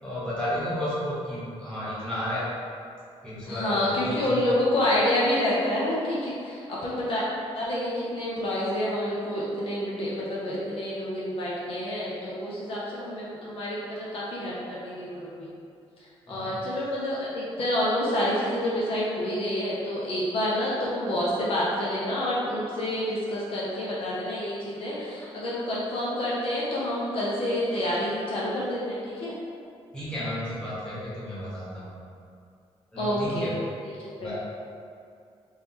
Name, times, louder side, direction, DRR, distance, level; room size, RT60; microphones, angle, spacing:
voice 1, 0.0-2.5 3.2-4.5 16.3-16.6 29.9-31.9 32.9-33.5 34.2-34.4, left 1 dB, 10° left, -11 dB, 1.2 m, -32 dB
voice 2, 3.5-7.2 7.5-15.5 16.3-29.3 33.0-33.5 33.8-33.9 34.2-34.3, left 1 dB, 60° left, -6 dB, 0.6 m, -28 dB
3.6 x 3.1 x 2.8 m, 2.4 s
wide cardioid pair, 155°, 11 cm